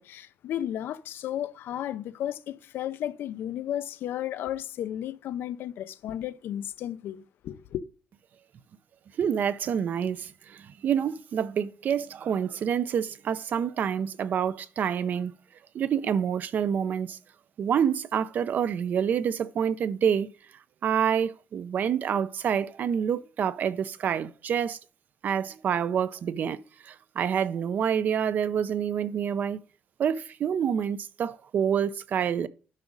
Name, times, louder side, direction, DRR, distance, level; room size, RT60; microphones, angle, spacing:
voice 1, 0.0-7.8, left 11 dB, 80° left, 0.6 m, -34 dB
voice 2, 9.2-15.3 15.7-17.2 17.6-20.3 20.8-24.8 25.2-26.6 26.8-29.6 30.0-32.5, right 8 dB, 55° right, 0.6 m, -27 dB
10.5 x 6.0 x 3.9 m
cardioid pair, 155°, 4 cm